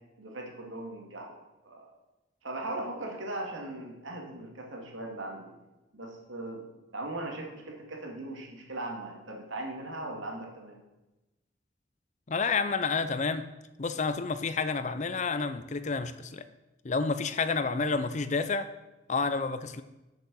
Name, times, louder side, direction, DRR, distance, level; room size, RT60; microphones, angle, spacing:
voice 1, 0.2-1.4 1.6-1.9 2.4-5.5 5.9-6.7 6.9-10.8, right 2 dB, 80° right, 0 dB, 2.3 m, -39 dB
voice 2, 12.3-13.5 13.8-16.5 16.8-18.7 19.1-19.8, left 4 dB, 35° left, 12 dB, 0.5 m, -29 dB
8.5 x 6.5 x 6.3 m, 1.0 s
head